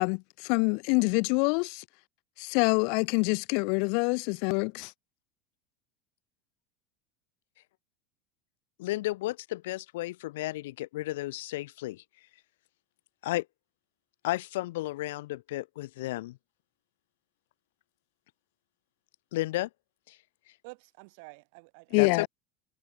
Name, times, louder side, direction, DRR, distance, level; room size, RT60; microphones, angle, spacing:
voice 1, 0.0-1.8 2.4-4.9 21.9-22.3, left 39 dB, 60° left, 1.1 m, -26 dB
voice 2, 8.8-12.0 13.2-13.5 14.2-16.4 19.3-19.7 20.1-20.2 22.0-22.3, left 17 dB, 80° left, 1.6 m, -33 dB
voice 3, 20.6-22.3, right 31 dB, 65° right, 6.8 m, -50 dB
supercardioid pair, 135°, 0 cm